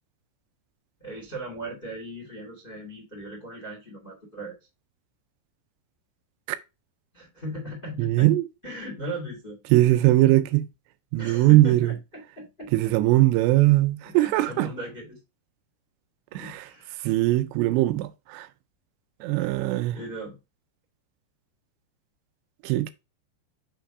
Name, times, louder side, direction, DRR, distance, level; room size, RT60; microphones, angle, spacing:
voice 1, 1.0-4.6 7.1-8.3 8.6-9.6 11.2-12.9 14.0-15.2 16.3-17.0 19.4-19.5 19.9-20.3, right 1 dB, 35° left, 0.8 m, -38 dB
voice 2, 8.0-8.4 9.7-10.7 11.1-11.9 12.7-14.7 16.4-16.6 17.0-18.5 19.2-20.0 22.6-22.9, right 16 dB, 85° right, 2.6 m, -20 dB
6.5 x 3.3 x 4.6 m
omnidirectional pair, 5.1 m